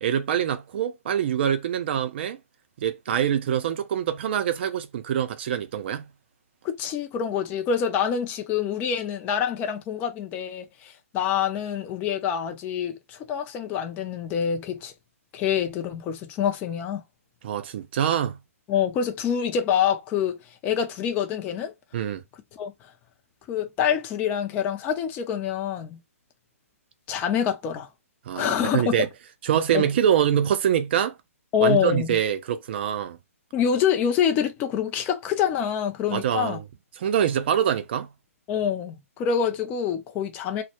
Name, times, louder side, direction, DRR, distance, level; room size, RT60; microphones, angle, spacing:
voice 1, 0.0-2.4 2.8-6.1 17.4-18.4 21.9-22.2 28.3-29.1 29.4-31.1 31.6-33.2 36.1-36.6 37.0-38.1, right 9 dB, 45° right, 0.4 m, -24 dB
voice 2, 6.6-14.9 15.3-17.0 18.7-21.7 22.5-22.7 23.5-26.0 27.1-27.9 28.4-28.9 29.7-29.8 31.5-32.2 33.5-36.6 38.5-40.6, left 8 dB, 20° left, 0.4 m, -26 dB
2.1 x 2.0 x 2.9 m
hypercardioid pair, 145°, 8 cm